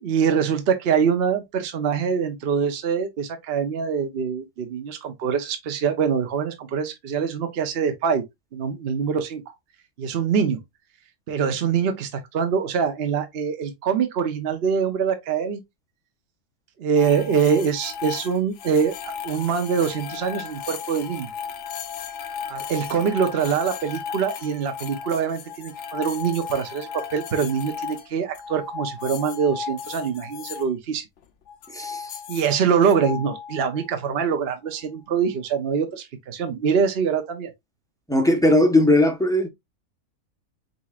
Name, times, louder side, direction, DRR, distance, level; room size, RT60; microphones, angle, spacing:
voice 1, 0.0-8.2 8.5-9.4 10.0-10.6 11.3-15.6 16.8-21.3 22.5-31.0 32.3-37.5, right 6 dB, 50° right, 0.9 m, -24 dB
sound 1, 17.0-30.7 31.5-34.1, left 7 dB, 60° left, 0.8 m, -35 dB
voice 2, 31.7-32.1 38.1-39.5, left 1 dB, 5° left, 0.6 m, -18 dB
4.5 x 4.1 x 2.3 m
omnidirectional pair, 1.5 m